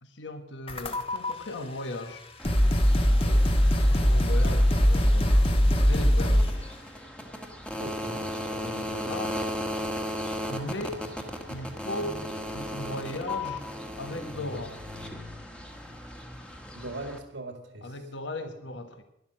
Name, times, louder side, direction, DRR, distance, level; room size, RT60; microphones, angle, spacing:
voice 1, 0.0-2.2 3.7-5.4 5.8-6.5 8.4-9.4 10.5-11.0 11.5-12.3 12.5-13.6 14.0-14.8 17.8-19.0, left 1 dB, 70° left, 7 dB, 1.4 m, -37 dB
sound 1, 0.7-1.3 2.1-2.2 2.4-6.6, equal, 30° left, 1.4 m, -21 dB
sound 2, 2.4-17.2, left 1 dB, 5° left, 1.4 m, -37 dB
voice 2, 3.1-3.5 7.8-8.3 16.7-18.0 18.4-18.8, right 2 dB, 75° right, 5 dB, 2.2 m, -40 dB
12.5 x 11.5 x 7.4 m, 0.76 s
head